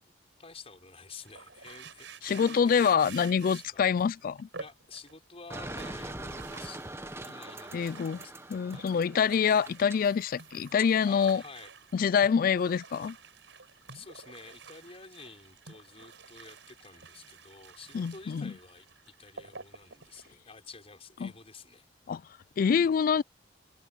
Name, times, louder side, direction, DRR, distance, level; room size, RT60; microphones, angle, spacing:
voice 1, 0.4-2.9 3.2-3.9 4.6-8.3 8.7-9.0 11.0-11.7 13.9-21.9 23.2-23.3, left 4 dB, 35° left, 6.1 m, -50 dB
sound 1, 1.2-5.1 5.5-20.3, right 5 dB, 90° right, 4.9 m, -50 dB
voice 2, 2.2-4.5 7.7-8.2 8.5-11.4 11.9-13.2 17.9-18.5 21.2-21.3 22.1-22.2 22.6-23.2, left 7 dB, 50° left, 0.3 m, -26 dB
sound 2, 5.5-10.9, right 2 dB, 15° right, 1.3 m, -43 dB
head